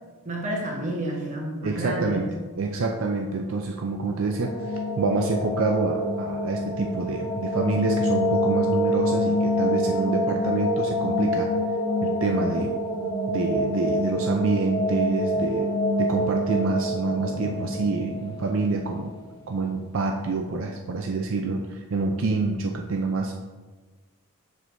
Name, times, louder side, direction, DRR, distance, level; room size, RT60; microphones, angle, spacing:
voice 1, 0.2-2.2, right 1 dB, 35° right, -1 dB, 1.1 m, -30 dB
voice 2, 1.6-2.3 2.6-11.5 12.0-12.7 13.3-15.7 16.0-19.1 19.5-23.3, right 3 dB, 65° right, 2 dB, 0.4 m, -27 dB
sound 1, 4.1-19.0, equal, 20° left, 1.0 m, -26 dB
7.3 x 6.2 x 2.6 m, 1.3 s
head